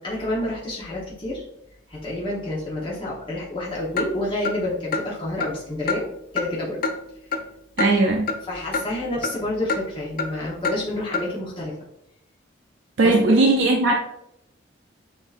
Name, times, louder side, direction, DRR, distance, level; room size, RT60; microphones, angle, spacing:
voice 1, 0.0-1.4 1.9-6.1 6.3-6.8 8.5-11.7 13.0-13.1, left 1 dB, 25° left, -7 dB, 0.9 m, -29 dB
Clock, 4.0-4.1 4.4-4.6 4.9-5.1 5.4-5.5 5.9-6.0 6.4-6.5 6.8-7.0 7.3-7.4 7.8-7.9 8.3-8.4 8.7-8.8 9.2-9.4 9.7-9.8 10.2-10.3 10.6-10.8 11.1-11.3, left 4 dB, 45° left, 0.4 m, -25 dB
voice 2, 7.8-8.3 13.0-13.9, right 2 dB, 65° right, 0 dB, 0.5 m, -18 dB
6.7 x 2.7 x 2.4 m, 0.77 s
head